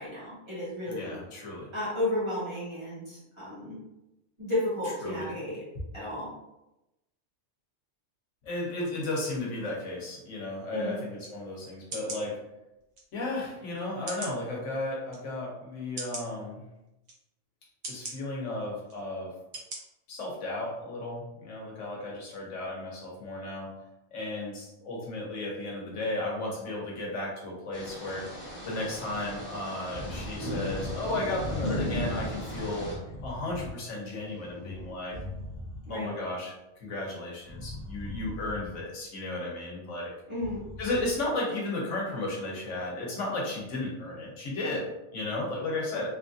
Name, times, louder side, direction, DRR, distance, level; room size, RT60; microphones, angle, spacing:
voice 1, 0.0-1.2 1.7-3.8 4.4-5.6 5.9-6.3 10.7-11.0 35.9-36.1 40.3-40.6, left 1 dB, 25° right, -9 dB, 1.1 m, -33 dB
voice 2, 0.8-1.7 5.0-5.3 8.4-12.4 13.1-16.6 17.9-19.3 20.1-23.7 24.1-28.3 28.6-32.9 33.2-35.2 35.9-36.5 36.8-40.1 40.8-46.1, left 2 dB, 85° left, -3 dB, 1.2 m, -34 dB
sound 1, 11.2-11.3 11.9-12.2 13.0-13.1 14.1-14.4 15.1-15.2 16.0-16.3 17.0-17.2 17.8-18.2 18.9-19.0 19.5-19.8 20.2-20.3, right 2 dB, 45° right, 0.6 m, -38 dB
sound 2, 27.7-32.9, left 1 dB, 10° left, 1.0 m, -36 dB
sound 3, 29.8-30.4 30.6-31.1 31.3-33.7 34.1-36.1 37.4-38.8 40.3-41.3, left 1 dB, 50° left, 0.9 m, -41 dB
3.1 x 2.4 x 2.5 m, 0.93 s
omnidirectional pair, 1.2 m